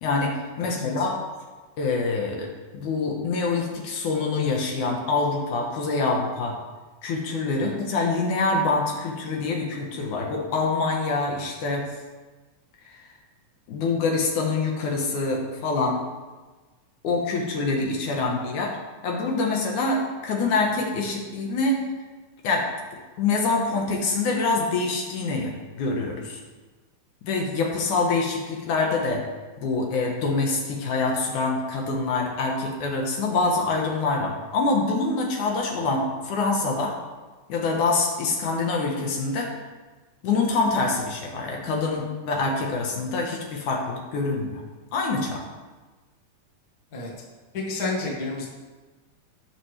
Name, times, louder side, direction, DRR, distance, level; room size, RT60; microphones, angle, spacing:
voice 1, 0.0-1.2 1.8-2.5 2.7-6.6 7.0-11.8 13.7-16.0 17.0-18.8 19.0-21.9 22.4-22.7 23.2-26.4 27.2-29.2 29.6-37.0 37.5-39.5 40.2-44.6 44.9-45.4, left 3 dB, 75° left, 0 dB, 2.7 m, -25 dB
voice 2, 0.6-1.1 7.6-7.7 46.9-47.1 47.5-48.5, left 3 dB, 35° left, -2 dB, 1.9 m, -30 dB
17.0 x 6.3 x 3.3 m, 1.3 s
omnidirectional pair, 3.7 m